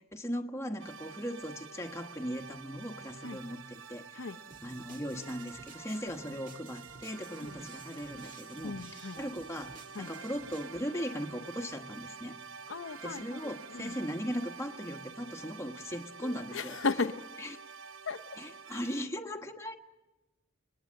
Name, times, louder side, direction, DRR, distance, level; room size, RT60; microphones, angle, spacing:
voice 1, 0.0-4.3 4.6-12.4 13.0-16.8 17.4-17.6 18.4-19.8, equal, 15° left, 4 dB, 1.3 m, -38 dB
sound 1, 0.8-19.0, right 5 dB, 70° right, 0.8 m, -48 dB
sound 2, 4.5-10.7, right 3 dB, 40° right, 1.9 m, -54 dB
voice 2, 8.6-9.2 10.0-10.1 12.7-13.4 13.7-13.9 16.2-17.2 18.1-18.2, left 4 dB, 65° left, 8 dB, 0.8 m, -35 dB
30.0 x 20.0 x 7.6 m, 1.1 s
head